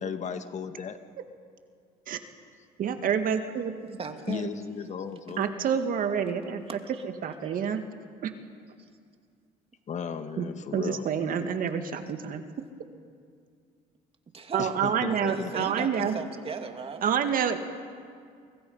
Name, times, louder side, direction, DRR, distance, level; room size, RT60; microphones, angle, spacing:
voice 1, 0.0-1.0 4.3-5.5 9.9-11.1 14.6-16.1, left 6 dB, 45° left, 9 dB, 1.5 m, -35 dB
voice 2, 2.8-4.0 5.4-6.6 7.0-7.8 8.2-8.3 10.4-10.5 10.7-12.4 14.5-16.2 17.0-17.6, right 7 dB, 55° right, 7 dB, 1.9 m, -28 dB
voice 3, 4.0-4.5 6.7-7.0 7.4-7.7 8.8-8.9 14.3-14.7 15.1-17.0, right 5 dB, 35° right, 5 dB, 2.5 m, -38 dB
29.5 x 24.5 x 5.6 m, 2.2 s
cardioid pair, 95°, 17 cm